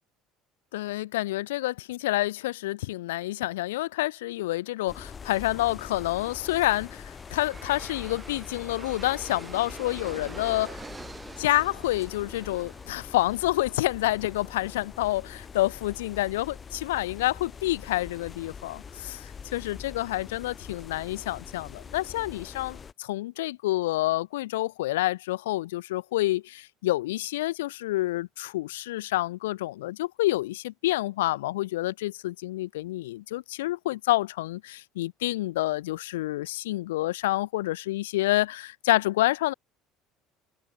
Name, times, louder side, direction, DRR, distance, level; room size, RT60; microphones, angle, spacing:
voice 1, 0.7-10.8 11.4-39.5, left 17 dB, 85° left, 0.6 m, -28 dB
sound 1, 4.9-22.9, left 6 dB, 35° left, 7.0 m, -44 dB
Aircraft, 6.4-17.5, right 3 dB, 20° right, 3.0 m, -47 dB
hypercardioid pair, 70°, 0 cm